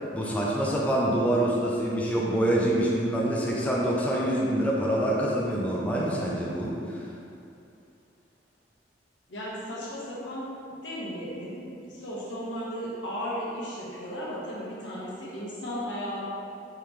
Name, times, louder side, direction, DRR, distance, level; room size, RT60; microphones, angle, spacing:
voice 1, 0.1-7.1, right 1 dB, 10° left, -5 dB, 0.4 m, -26 dB
voice 2, 9.3-16.2, equal, 85° left, -6 dB, 1.2 m, -35 dB
4.7 x 3.6 x 3.1 m, 2.6 s
head